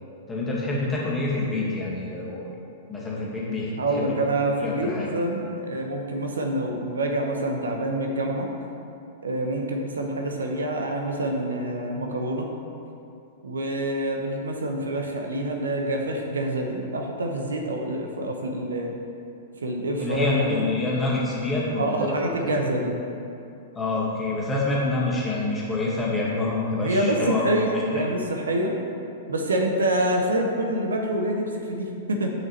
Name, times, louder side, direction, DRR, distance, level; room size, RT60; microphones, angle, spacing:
voice 1, 0.3-2.4 2.9-4.1 4.6-5.1 20.0-22.5 23.8-28.0, left 2 dB, 15° left, -5 dB, 1.7 m, -27 dB
voice 2, 3.8-8.5 9.2-12.5 13.4-18.9 19.6-20.6 21.8-22.9 26.8-28.7 29.3-32.3, right 1 dB, 75° right, 2 dB, 0.8 m, -26 dB
9.1 x 5.9 x 3.2 m, 2.7 s
figure-of-eight pair, 100°, 0 cm